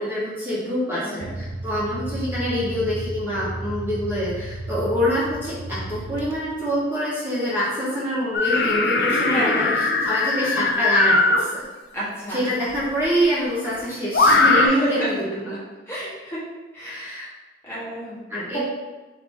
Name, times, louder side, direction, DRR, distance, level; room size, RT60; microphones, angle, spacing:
voice 1, 0.0-11.6 12.3-15.5 16.8-17.3 18.3-18.6, equal, 10° right, -10 dB, 1.0 m, -25 dB
voice 2, 0.9-1.3 8.4-8.8 9.3-9.7 11.9-12.5 14.6-15.1 15.9-16.4 16.7-17.2 17.6-18.2 18.5-18.6, right 1 dB, 15° left, -9 dB, 1.1 m, -30 dB
sound 1, 1.2-6.8, right 1 dB, 85° right, 0.5 m, -33 dB
sound 2, 8.3-11.4 12.8-12.9 14.1-14.7, left 3 dB, 65° left, 0.4 m, -19 dB
4.1 x 2.8 x 3.5 m, 1.2 s
head